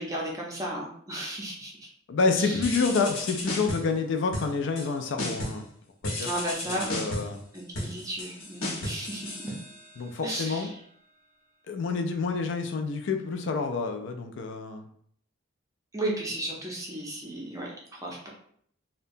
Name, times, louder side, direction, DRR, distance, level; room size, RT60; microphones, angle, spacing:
voice 1, 0.0-1.9 2.4-2.7 6.2-6.9 7.5-9.5 10.2-10.7 15.9-18.3, right 1 dB, 15° right, -2 dB, 0.5 m, -34 dB
voice 2, 2.1-5.6 6.0-6.3 6.7-7.4 10.0-10.7 11.7-14.9, left 4 dB, 60° left, 6 dB, 0.3 m, -28 dB
sound 1, 2.6-4.0 4.3-4.9 5.2-5.7 6.0-10.0, left 1 dB, 75° left, 0.9 m, -34 dB
2.8 x 2.2 x 2.5 m, 0.64 s
head